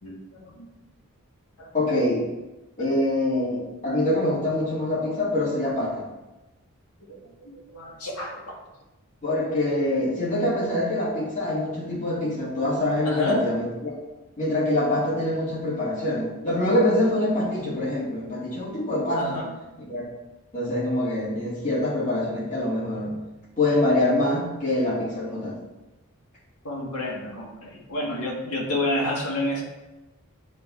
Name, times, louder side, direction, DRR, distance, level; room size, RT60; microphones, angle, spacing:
voice 1, 0.0-0.7 1.6-1.7 2.8-2.9 4.9-5.0 5.7-5.9 7.1-8.6 13.0-13.4 19.2-19.5 26.6-29.6, left 1 dB, 85° left, -2 dB, 1.7 m, -30 dB
voice 2, 1.7-2.3 2.8-6.1 9.2-13.9 14.4-19.4 19.9-20.0 20.5-23.1 23.6-25.6, left 1 dB, 35° left, -6 dB, 2.3 m, -25 dB
7.4 x 3.4 x 5.8 m, 1.0 s
head